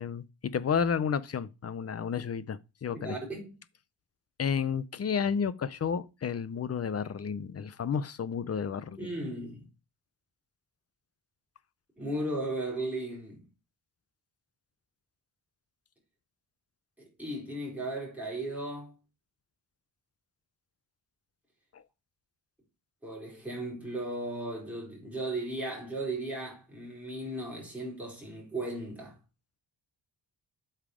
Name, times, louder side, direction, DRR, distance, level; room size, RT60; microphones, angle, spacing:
voice 1, 0.0-3.2 4.4-9.1 21.7-21.8, left 6 dB, 35° left, 0.5 m, -31 dB
voice 2, 2.9-3.5 9.0-9.7 12.0-13.4 17.2-18.9 23.0-29.2, right 1 dB, 5° right, 4.8 m, -36 dB
8.5 x 5.6 x 4.9 m
wide cardioid pair, 175°, 44 cm